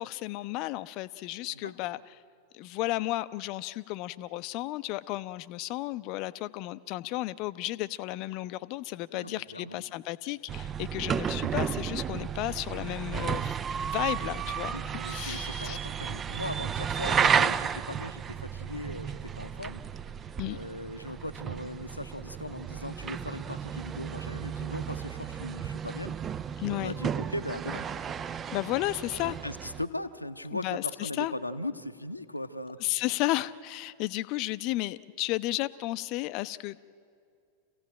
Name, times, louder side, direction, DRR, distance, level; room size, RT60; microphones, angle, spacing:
voice 1, 0.0-2.1 2.5-13.6 13.8-14.7 15.1-15.8 20.4-20.6 26.6-26.9 28.5-29.4 30.5-31.3 32.8-36.8, left 17 dB, 40° left, 15 dB, 0.6 m, -33 dB
voice 2, 9.1-9.8 14.7-19.8 20.5-26.1 26.8-27.9 29.4-32.8, left 1 dB, 85° left, 8 dB, 0.9 m, -39 dB
sound 1, 10.5-29.9, right 7 dB, 25° right, 0.5 m, -33 dB
27.0 x 16.5 x 8.8 m, 2.3 s
figure-of-eight pair, 90°, 0 cm